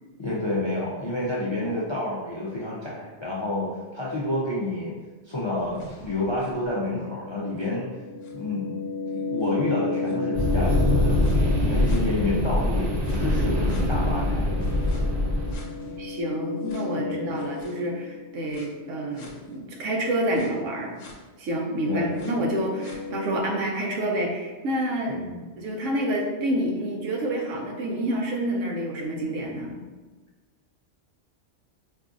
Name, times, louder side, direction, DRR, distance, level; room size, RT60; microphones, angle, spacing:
voice 1, 0.2-4.9 5.2-7.9 8.3-8.8 9.1-14.6 17.0-17.4 21.9-22.3 25.1-25.4, left 1 dB, 45° left, -7 dB, 0.3 m, -29 dB
sound 1, 5.6-12.5 13.0-18.7 19.2-19.3 20.4-20.5 21.0-21.1 21.6-23.4, left 3 dB, 85° left, 1.0 m, -34 dB
sound 2, 10.3-15.6, left 1 dB, 30° right, 0.6 m, -23 dB
voice 2, 15.8-21.0 21.4-25.2 25.6-29.8, right 1 dB, 85° right, 1 dB, 1.0 m, -28 dB
4.4 x 2.5 x 2.4 m, 1.3 s
omnidirectional pair, 1.3 m